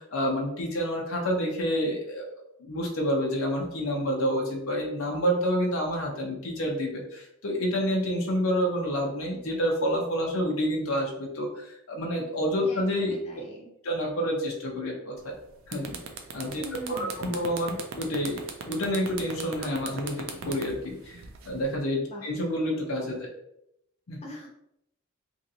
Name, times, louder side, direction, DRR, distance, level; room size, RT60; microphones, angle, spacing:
voice 1, 0.0-13.1 13.8-15.3 15.7-16.0 16.3-16.6 16.9-18.4 18.7-21.2 21.5-23.3 24.1-24.2, equal, 80° left, 0 dB, 0.7 m, -28 dB
voice 2, 12.6-13.7 16.5-17.4 22.1-22.3 24.2-24.5, equal, 30° left, -3 dB, 0.8 m, -42 dB
sound 1, 15.2-15.4 15.7-21.8, right 6 dB, 70° right, 0.5 m, -38 dB
3.1 x 2.7 x 2.6 m, 0.78 s
head